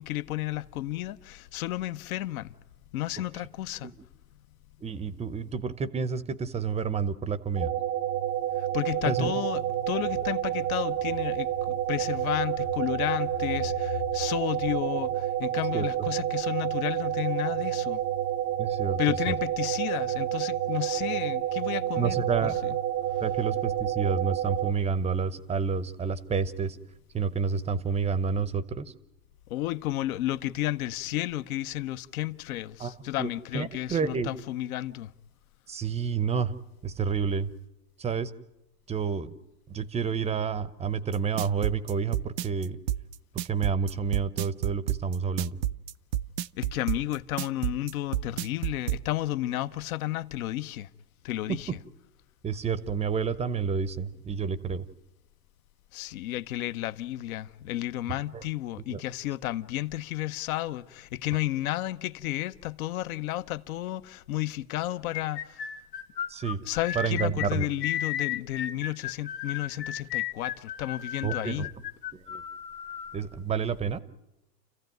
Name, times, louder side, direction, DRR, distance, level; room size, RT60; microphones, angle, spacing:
voice 1, 0.0-2.5 2.9-3.9 8.6-18.0 19.0-22.8 29.5-35.1 46.6-50.9 51.2-51.7 55.9-65.7 66.6-71.7, left 15 dB, 60° left, 1.0 m, -32 dB
voice 2, 4.8-7.7 9.1-9.3 15.7-16.1 18.6-19.0 19.3-19.4 22.0-22.6 23.2-26.8 27.1-28.9 32.8-32.9 33.2-33.3 33.5-34.3 35.7-36.5 36.8-37.5 38.0-38.3 38.9-39.3 39.7-42.8 43.5-45.6 51.5-51.8 52.4-54.8 58.3-58.4 58.9-59.0 66.3-66.6 66.9-67.7 71.2-71.7 72.1-72.4 73.1-74.0, right 6 dB, 15° right, 0.7 m, -29 dB
sound 1, 7.6-24.7, right 12 dB, 45° right, 0.8 m, -29 dB
sound 2, 41.1-49.0, right 12 dB, 80° right, 0.8 m, -29 dB
sound 3, 65.1-73.2, left 10 dB, 85° left, 1.8 m, -34 dB
29.5 x 15.0 x 9.3 m
hypercardioid pair, 120°, 48 cm